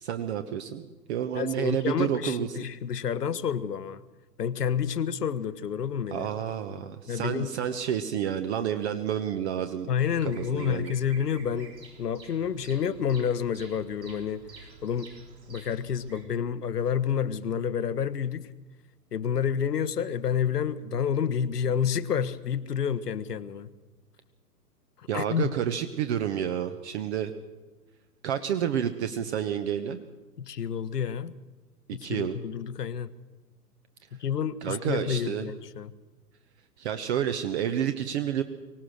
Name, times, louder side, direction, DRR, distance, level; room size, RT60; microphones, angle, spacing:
voice 1, 0.0-2.5 6.1-9.9 10.2-10.9 25.1-27.3 28.2-30.0 31.9-32.3 34.6-35.4 36.8-38.4, right 9 dB, 40° right, 9 dB, 1.3 m, -29 dB
voice 2, 1.3-4.0 4.4-6.3 7.1-7.5 9.9-15.1 15.5-18.5 19.1-23.7 25.0-25.5 30.4-31.3 31.9-33.1 34.1-35.9, left 8 dB, 65° left, 13 dB, 1.4 m, -29 dB
Bird vocalization bird call bird song, 9.9-16.2, right 4 dB, 75° right, 6.6 m, -49 dB
24.0 x 18.5 x 6.5 m, 1.2 s
figure-of-eight pair, 115°, 50 cm